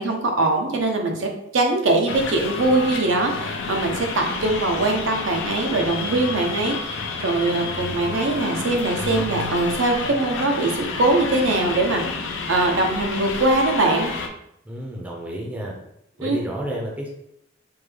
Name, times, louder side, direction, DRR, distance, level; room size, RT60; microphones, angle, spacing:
voice 1, 0.0-14.1 16.2-16.4, right 2 dB, 75° right, 2 dB, 0.6 m, -22 dB
sound 1, 2.1-14.3, left 4 dB, 75° left, 0.5 m, -30 dB
voice 2, 14.6-15.7 16.2-17.1, right 1 dB, 10° right, -2 dB, 0.5 m, -31 dB
3.5 x 2.2 x 3.2 m, 0.76 s
head